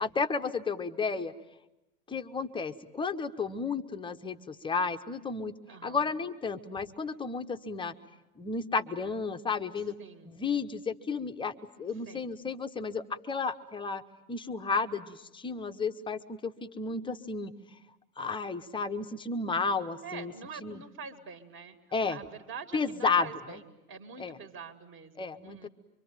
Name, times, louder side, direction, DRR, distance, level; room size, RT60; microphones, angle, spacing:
voice 1, 0.0-1.3 2.1-5.5 5.8-7.9 8.4-10.0 10.2-14.0 14.3-17.5 18.2-20.3 20.6-20.8 21.9-22.2 22.7-23.6 24.2-24.4 25.2-25.7, left 4 dB, 10° left, 8 dB, 1.0 m, -32 dB
voice 2, 5.7-6.2 10.0-10.4 12.1-12.3 20.0-23.6 23.9-25.7, right 5 dB, 25° right, 8 dB, 2.1 m, -46 dB
25.0 x 24.5 x 8.9 m, 0.92 s
hypercardioid pair, 110°, 47 cm